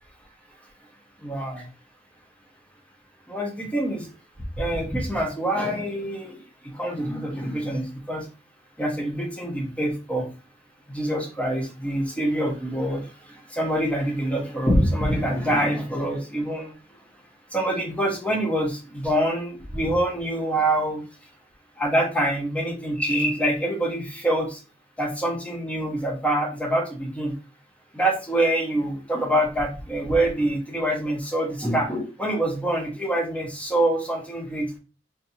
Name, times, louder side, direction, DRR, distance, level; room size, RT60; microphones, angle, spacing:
voice 1, 1.2-1.7 3.3-4.1 4.6-8.3 8.8-10.3 10.9-13.1 13.5-16.7 17.5-21.0 21.8-24.6 25.0-27.3 27.9-34.8, right 1 dB, 5° left, 0 dB, 1.0 m, -25 dB
4.1 x 2.7 x 2.8 m, 0.33 s
head